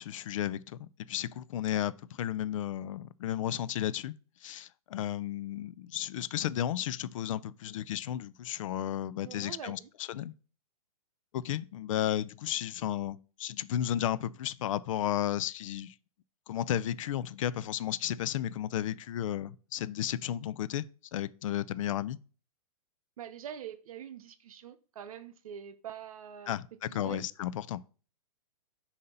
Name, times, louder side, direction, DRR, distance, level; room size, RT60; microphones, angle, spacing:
voice 1, 0.0-4.2 4.4-10.3 11.3-15.9 16.5-22.2 26.5-27.8, left 11 dB, 60° left, 0.4 m, -33 dB
voice 2, 9.2-9.9 23.2-26.6 26.9-27.2, right 9 dB, 70° right, 0.8 m, -44 dB
6.7 x 2.8 x 5.3 m
hypercardioid pair, 145°, 19 cm